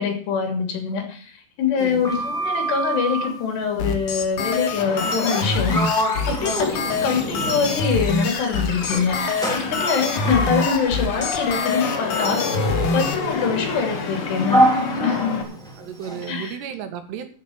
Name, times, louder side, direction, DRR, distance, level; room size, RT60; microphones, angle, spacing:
voice 1, 0.0-5.8 6.3-9.2 9.5-14.7 15.0-15.4 16.3-16.6, left 6 dB, 80° left, 4 dB, 5.1 m, -24 dB
Sliding door, 1.8-3.4 5.2-5.5 5.7-8.2 8.8-16.3, right 1 dB, ahead, 1.7 m, -27 dB
voice 2, 1.8-2.2 15.3-17.3, right 8 dB, 80° right, 7 dB, 3.7 m, -34 dB
sound 1, 3.8-13.2, left 3 dB, 65° left, 3.1 m, -25 dB
sound 2, 4.8-15.4, left 4 dB, 45° left, 2.0 m, -30 dB
13.0 x 6.2 x 7.9 m, 0.43 s
omnidirectional pair, 4.8 m